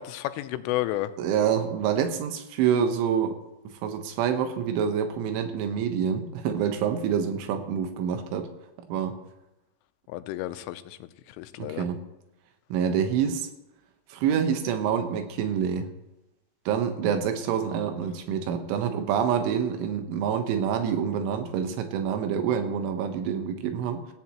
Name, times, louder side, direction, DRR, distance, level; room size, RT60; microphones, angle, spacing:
voice 1, 0.0-1.1 10.1-11.9, left 15 dB, 90° left, 11 dB, 3.2 m, -32 dB
voice 2, 1.2-3.4 3.8-8.5 8.8-9.2 11.6-12.0 12.7-13.5 14.1-15.9 16.7-24.0, right 8 dB, 80° right, 6 dB, 3.7 m, -27 dB
17.0 x 15.5 x 3.0 m, 0.94 s
omnidirectional pair, 5.6 m